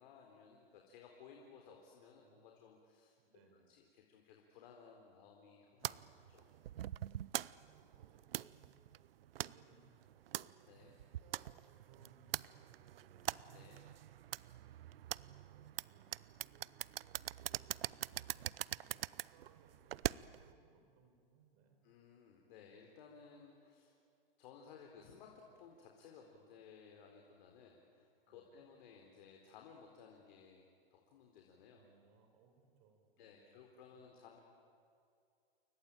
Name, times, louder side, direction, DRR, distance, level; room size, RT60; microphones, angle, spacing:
voice 1, 0.0-3.1 3.7-6.5 10.7-10.9 13.5-13.9 21.8-24.0 24.4-30.6 30.9-31.8 33.2-34.4, left 6 dB, 55° left, 1 dB, 4.0 m, -59 dB
voice 2, 2.2-2.6 3.2-3.7 7.3-10.5 11.2-13.5 14.5-21.8 28.3-28.6 31.7-33.6 33.9-34.0, right 5 dB, 45° right, 5 dB, 5.1 m, -69 dB
sound 1, 5.8-20.5, right 12 dB, 75° right, 0.7 m, -44 dB
29.0 x 22.5 x 8.9 m, 2.4 s
hypercardioid pair, 125°, 29 cm